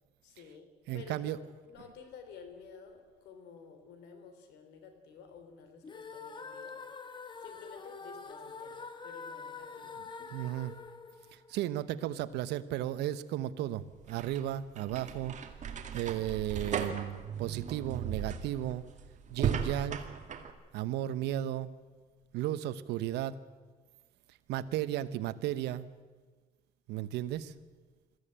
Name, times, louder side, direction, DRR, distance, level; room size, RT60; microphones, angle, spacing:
voice 1, 0.2-0.7 0.9-1.4 1.6-7.0 7.4-10.4, left 6 dB, 85° left, 7 dB, 3.4 m, -52 dB
voice 2, 0.9-1.4 9.9-10.0 10.3-10.7 11.3-15.3 15.9-18.8 19.3-20.0 20.7-21.7 22.3-23.4 24.5-25.9 26.9-27.5, right 12 dB, 85° right, 15 dB, 0.9 m, -34 dB
sound 1, 5.8-12.0, left 4 dB, 30° left, 1.4 m, -46 dB
sound 2, 13.8-20.5, right 7 dB, 45° right, 2.1 m, -37 dB
21.0 x 14.5 x 8.8 m, 1.4 s
cardioid pair, 110°, 17 cm